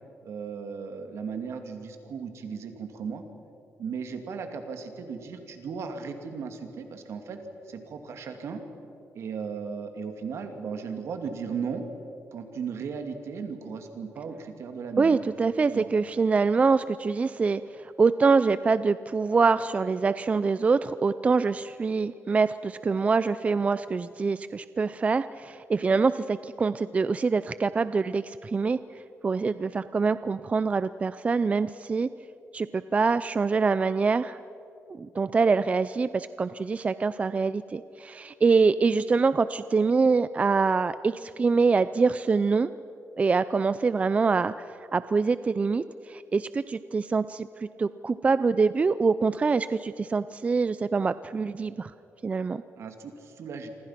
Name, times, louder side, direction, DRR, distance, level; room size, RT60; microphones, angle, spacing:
voice 1, 0.2-3.2 3.8-7.4 7.7-8.6 9.1-11.8 12.3-15.2 15.7-15.9 52.8-53.7, right 6 dB, 70° right, 6 dB, 2.6 m, -36 dB
voice 2, 15.0-28.8 29.2-32.1 32.5-34.4 35.0-42.7 43.2-51.9 52.2-52.6, right 4 dB, 25° right, 14 dB, 0.4 m, -25 dB
27.5 x 25.5 x 5.9 m, 2.7 s
wide cardioid pair, 145°, 5 cm